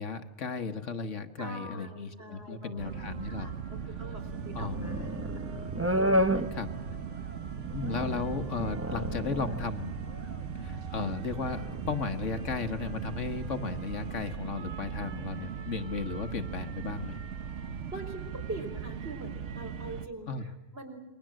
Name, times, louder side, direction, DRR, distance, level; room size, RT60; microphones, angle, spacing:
voice 1, 0.0-3.5 4.5-5.2 6.5-6.7 7.7-10.0 10.5-17.2 20.3-20.5, left 4 dB, 65° left, 8 dB, 1.6 m, -35 dB
voice 2, 1.4-5.3 17.9-21.0, right 2 dB, 50° right, 3 dB, 4.6 m, -44 dB
sound 1, 2.8-20.1, right 7 dB, 65° right, 1.4 m, -39 dB
sound 2, 4.2-14.4, equal, 10° right, 0.9 m, -34 dB
28.5 x 22.0 x 7.6 m, 1.1 s
omnidirectional pair, 1.4 m